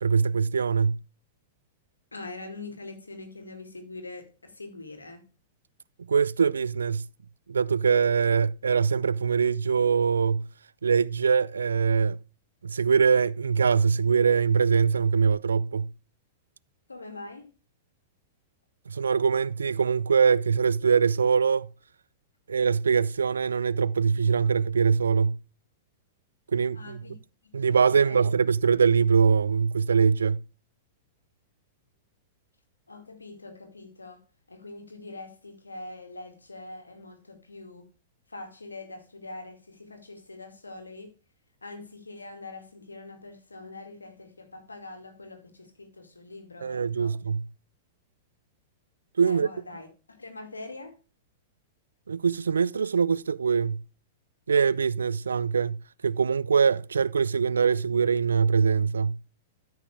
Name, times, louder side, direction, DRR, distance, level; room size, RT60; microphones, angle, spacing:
voice 1, 0.0-1.0 6.1-7.1 7.5-10.5 10.8-12.2 12.6-15.9 18.9-21.7 22.5-25.4 26.5-27.0 27.5-30.4 46.6-47.5 49.2-49.5 52.1-53.8 54.5-59.2, right 6 dB, 75° right, 0.3 m, -23 dB
voice 2, 2.1-5.2 16.9-17.5 26.7-27.2 27.7-28.3 32.9-37.9 38.3-41.1 41.6-47.2 49.2-51.0, left 2 dB, 80° left, 2.2 m, -43 dB
13.5 x 5.8 x 3.4 m
figure-of-eight pair, 100°, 0 cm